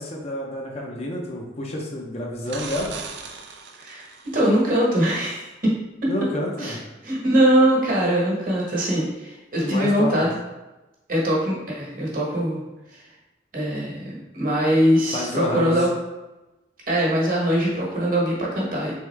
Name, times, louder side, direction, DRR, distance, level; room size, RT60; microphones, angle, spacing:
voice 1, 0.0-3.0 6.1-6.8 9.6-10.1 15.1-15.8, left 1 dB, 35° left, -1 dB, 0.6 m, -29 dB
sound 1, 2.4-4.7 8.9-9.0, right 4 dB, 65° right, 0.4 m, -38 dB
voice 2, 4.3-5.7 6.0-6.1 6.6-6.8 7.0-10.3 11.1-12.6 12.9-13.0 13.5-15.9 16.9-18.9, equal, 45° right, -4 dB, 1.2 m, -22 dB
3.5 x 3.5 x 3.3 m, 1.1 s
head